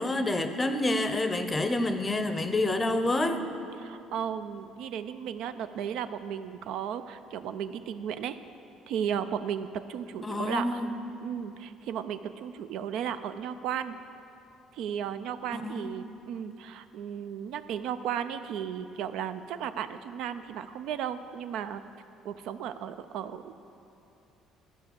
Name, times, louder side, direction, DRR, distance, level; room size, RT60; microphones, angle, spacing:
voice 1, 0.0-3.4 10.2-10.9 15.5-16.0, left 2 dB, 15° left, 8 dB, 0.6 m, -28 dB
voice 2, 3.8-8.4 8.9-10.8 11.2-14.0 14.7-21.8 22.2-23.5, right 8 dB, 75° right, 11 dB, 0.4 m, -35 dB
13.0 x 5.0 x 7.0 m, 2.8 s
cardioid pair, 120°, 0 cm